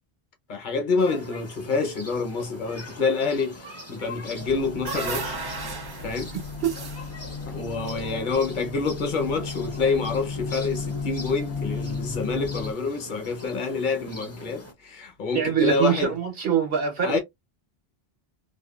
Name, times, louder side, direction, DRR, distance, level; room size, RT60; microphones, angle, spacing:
voice 1, 0.5-5.4 6.0-6.3 7.5-16.1 17.0-17.2, left 4 dB, 50° left, 1.0 m, -27 dB
sound 1, 1.0-14.7, equal, 15° left, 0.6 m, -42 dB
sound 2, 4.4-12.7, left 5 dB, 85° left, 0.8 m, -34 dB
sound 3, 4.6-8.6, right 4 dB, 40° right, 0.3 m, -36 dB
voice 2, 15.3-17.2, right 8 dB, 65° right, 1.2 m, -23 dB
2.8 x 2.3 x 2.3 m
omnidirectional pair, 1.0 m